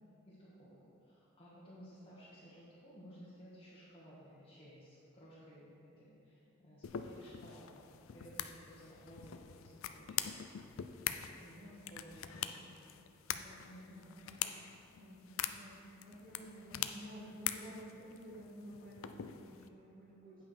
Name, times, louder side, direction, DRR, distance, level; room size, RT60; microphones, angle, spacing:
voice 1, 0.3-0.7 1.0-7.8 8.1-10.4 11.1-11.6 11.9-12.8 13.7-14.1, equal, 25° left, -11 dB, 1.4 m, -56 dB
sound 1, 6.8-19.7, left 10 dB, 70° left, 0.4 m, -44 dB
voice 2, 11.1-11.8 12.3-12.6 13.3-20.4, equal, 45° right, -6 dB, 2.2 m, -53 dB
8.8 x 5.5 x 5.1 m, 2.7 s
head